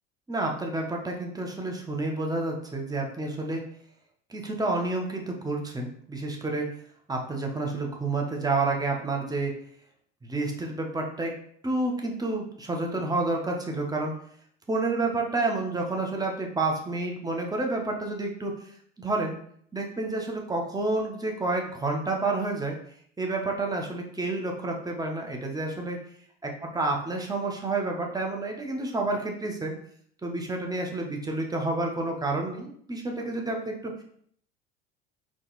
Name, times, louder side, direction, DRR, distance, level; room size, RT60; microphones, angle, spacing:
voice 1, 0.3-3.6 4.3-6.7 7.1-9.5 10.2-11.3 11.6-14.1 14.7-18.7 19.0-19.4 19.7-22.8 23.2-26.0 26.6-29.7 30.2-34.0, right 2 dB, 10° right, 1 dB, 1.1 m, -29 dB
4.2 x 3.1 x 4.1 m, 0.63 s
hypercardioid pair, 70°, 34 cm